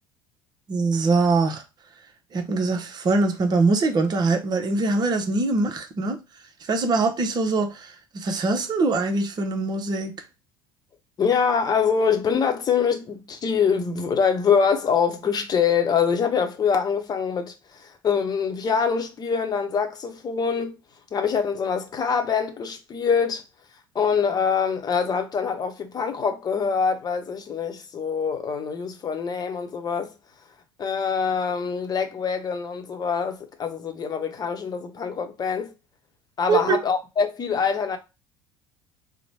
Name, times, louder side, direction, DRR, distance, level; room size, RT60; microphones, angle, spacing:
voice 1, 0.7-1.6 2.3-6.2 6.7-10.2 36.5-36.8, right 3 dB, 35° right, 0.8 m, -23 dB
voice 2, 11.2-17.5 17.8-20.7 21.1-23.4 23.9-30.1 30.8-35.7 36.4-38.0, left 6 dB, 35° left, 0.9 m, -24 dB
3.0 x 2.1 x 4.2 m
figure-of-eight pair, 60°, 12 cm